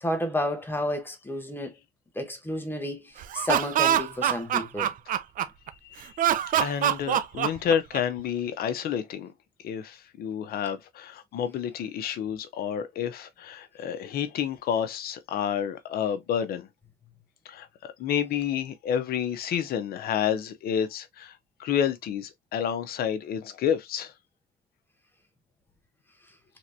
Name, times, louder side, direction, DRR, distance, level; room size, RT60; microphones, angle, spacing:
voice 1, 0.0-1.7 2.2-4.9, left 1 dB, 10° left, 0.8 m, -31 dB
Laughter, 3.2-5.7 6.2-8.2, right 11 dB, 55° right, 0.5 m, -24 dB
voice 2, 6.6-9.3 9.6-16.7 17.4-24.1, left 8 dB, 65° left, 0.7 m, -29 dB
3.4 x 2.9 x 2.6 m
cardioid pair, 110°, 17 cm